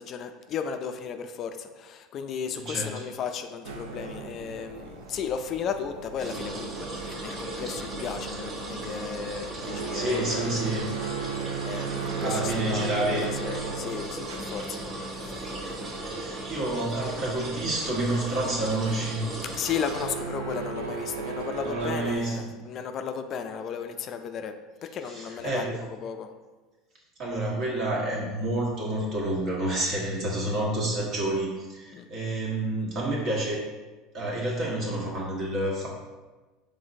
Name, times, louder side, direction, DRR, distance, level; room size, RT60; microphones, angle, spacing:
voice 1, 0.0-10.6 11.6-14.8 15.1-15.5 19.5-24.6 24.8-26.3 31.9-32.1, left 7 dB, 45° left, 8 dB, 0.3 m, -35 dB
voice 2, 2.5-2.9 9.5-10.9 12.2-13.3 15.9-19.2 21.6-22.5 25.1-25.7 27.2-33.6 34.1-35.9, right 1 dB, 50° right, -3 dB, 1.5 m, -29 dB
sound 1, 3.6-22.2, right 6 dB, 80° right, 0.5 m, -37 dB
sound 2, 6.2-20.1, right 1 dB, 35° right, 1.1 m, -37 dB
4.9 x 3.8 x 2.6 m, 1.2 s
hypercardioid pair, 85°, 0 cm